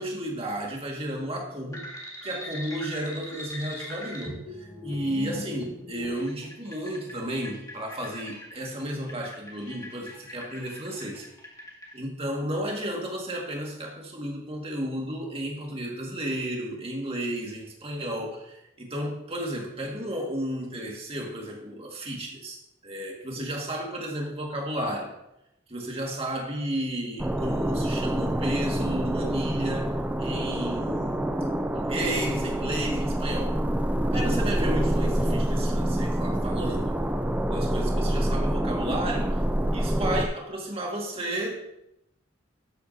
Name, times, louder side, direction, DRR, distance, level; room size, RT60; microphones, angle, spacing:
voice 1, 0.0-1.9 2.2-11.3 11.9-22.6 22.8-25.1 25.7-31.3 31.8-33.5 34.1-37.0 37.5-39.4 39.7-41.6, right 1 dB, 30° right, 0 dB, 1.9 m, -33 dB
sound 1, 1.7-11.9, left 1 dB, 15° left, 1.9 m, -41 dB
sound 2, 27.2-40.3, right 1 dB, 5° right, 0.4 m, -26 dB
13.0 x 8.3 x 2.8 m, 0.85 s
head